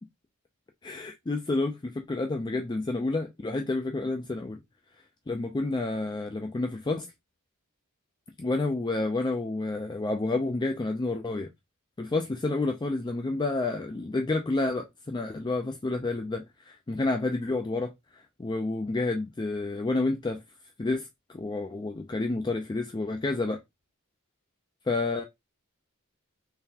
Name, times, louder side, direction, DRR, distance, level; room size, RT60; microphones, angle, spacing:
voice 1, 0.8-4.6 5.3-7.1 8.4-11.5 12.0-20.4 20.8-23.6 24.9-25.2, left 2 dB, 20° left, 0.4 m, -29 dB
3.9 x 3.3 x 2.7 m
head